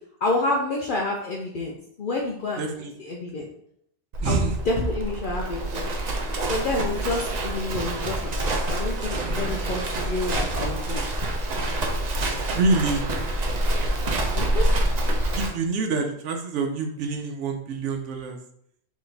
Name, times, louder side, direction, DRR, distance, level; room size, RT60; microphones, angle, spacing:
voice 1, 0.2-2.6 3.0-3.5 4.2-5.9 6.5-11.0 14.3-14.7, left 2 dB, 55° left, -1 dB, 0.7 m, -28 dB
voice 2, 2.6-2.9 4.2-4.6 10.0-10.2 12.5-13.1 15.3-18.4, right 3 dB, 85° right, 4 dB, 0.9 m, -26 dB
Livestock farm animals working animals, 4.1-15.5, right 1 dB, 50° right, 0.6 m, -26 dB
3.9 x 3.1 x 3.3 m, 0.69 s
omnidirectional pair, 1.2 m